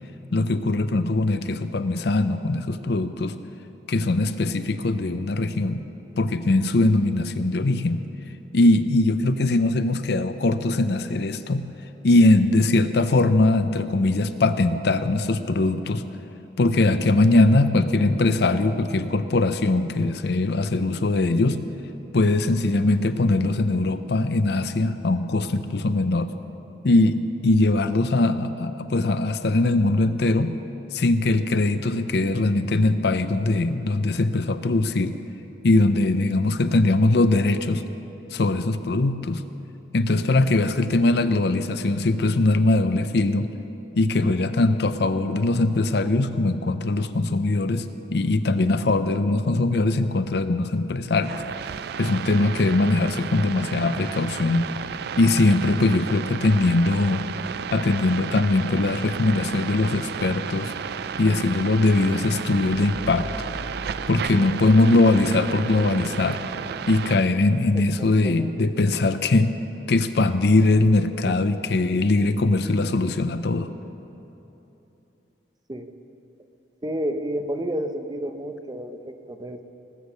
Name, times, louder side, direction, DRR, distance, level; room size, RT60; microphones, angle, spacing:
voice 1, 0.3-3.3 3.9-5.8 6.2-8.0 8.5-11.7 12.0-16.0 16.6-21.6 22.1-26.3 26.8-30.5 30.9-35.1 35.6-37.8 38.3-39.4 39.9-43.5 44.0-51.4 52.0-54.6 55.2-57.2 57.7-60.7 61.2-63.3 64.1-66.4 66.9-69.5 69.9-73.7, left 2 dB, 65° left, 11 dB, 0.6 m, -21 dB
sound 1, 51.2-67.2, right 7 dB, 60° right, 0.3 m, -33 dB
sound 2, 62.7-67.4, right 1 dB, 15° left, 4.1 m, -40 dB
voice 2, 67.7-68.6 71.3-71.5 75.7-75.9 76.8-79.6, right 1 dB, 25° right, 7 dB, 0.7 m, -31 dB
19.0 x 8.1 x 6.7 m, 3.0 s
head